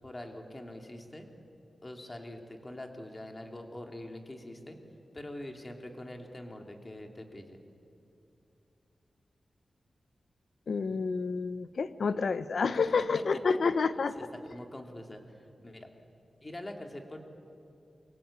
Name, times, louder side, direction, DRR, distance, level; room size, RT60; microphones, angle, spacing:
voice 1, 0.0-1.3 1.8-4.8 5.1-7.6 12.8-15.9 16.4-17.2, left 1 dB, 20° left, 3 dB, 2.7 m, -44 dB
voice 2, 10.7-14.1, left 4 dB, 65° left, 12 dB, 1.0 m, -29 dB
28.0 x 22.5 x 8.5 m, 2.7 s
wide cardioid pair, 150°, 0 cm